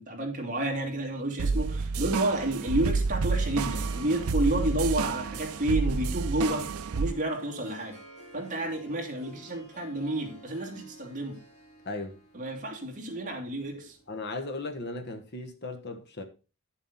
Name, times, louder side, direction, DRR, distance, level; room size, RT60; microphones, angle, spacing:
voice 1, 0.0-6.7 7.0-8.0 8.3-11.4 12.3-14.0, right 1 dB, 35° right, 2.6 m, -30 dB
sound 1, 1.4-7.1, right 4 dB, 75° right, 0.5 m, -29 dB
Harp, 3.3-14.8, right 1 dB, 30° left, 3.7 m, -52 dB
voice 2, 14.1-16.2, left 2 dB, 50° left, 1.3 m, -36 dB
10.5 x 7.2 x 4.1 m
head